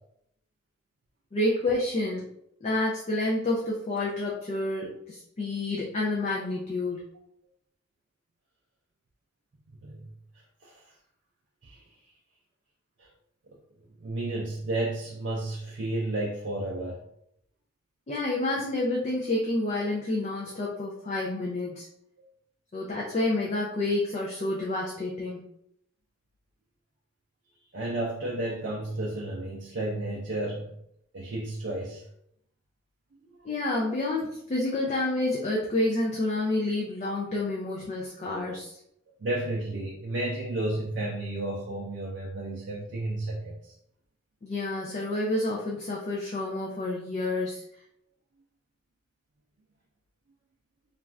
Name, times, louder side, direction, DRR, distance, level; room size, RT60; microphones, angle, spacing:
voice 1, 1.3-2.3 2.6-7.0 18.1-21.9 22.7-25.4 33.4-38.7 44.4-47.6, left 2 dB, 35° left, -3 dB, 0.4 m, -29 dB
voice 2, 10.6-10.9 11.6-11.8 13.0-13.1 14.0-17.0 27.7-30.8 31.1-32.0 39.2-43.7, right 2 dB, 55° right, -3 dB, 0.4 m, -32 dB
2.4 x 2.3 x 3.2 m, 0.73 s
head